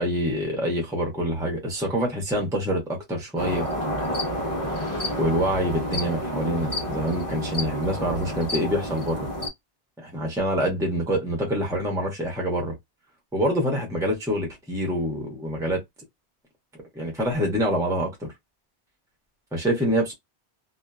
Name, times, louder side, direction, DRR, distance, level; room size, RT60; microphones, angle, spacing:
voice 1, 0.0-3.7 5.1-9.3 10.0-12.8 13.3-15.8 16.8-18.3 19.5-20.1, equal, 5° right, 0.8 m, -26 dB
sound 1, 3.4-9.5, equal, 30° left, 1.1 m, -29 dB
2.7 x 2.3 x 2.2 m
omnidirectional pair, 1.1 m